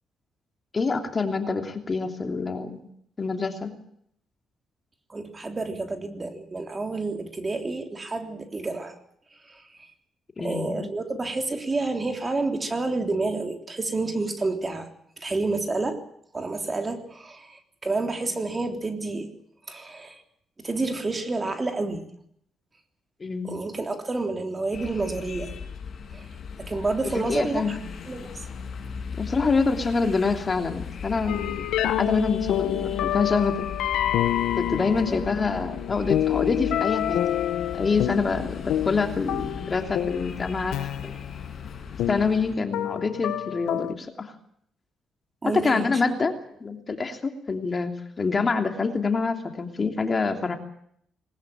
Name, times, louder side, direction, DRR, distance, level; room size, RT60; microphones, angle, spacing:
voice 1, 0.7-2.9 3.2-3.7 10.4-10.9 23.2-23.5 27.1-27.7 29.2-33.7 34.6-37.3 37.7-40.8 41.0-41.2 42.1-44.3 45.6-46.3 46.6-50.6, left 4 dB, 30° left, 5 dB, 2.9 m, -26 dB
voice 2, 5.1-8.9 9.4-9.9 10.4-14.9 15.2-16.0 16.3-19.3 19.7-20.2 20.6-22.0 23.4-25.5 26.1-26.3 26.6-27.8 28.1-28.4 35.1-35.2 45.4-46.0, right 3 dB, 25° right, 5 dB, 3.4 m, -29 dB
sound 1, 24.7-42.6, left 6 dB, 50° left, 6.2 m, -38 dB
sound 2, 31.3-43.9, left 12 dB, 85° left, 1.3 m, -28 dB
20.5 x 19.5 x 8.8 m, 0.68 s
cardioid pair, 90°, 0 cm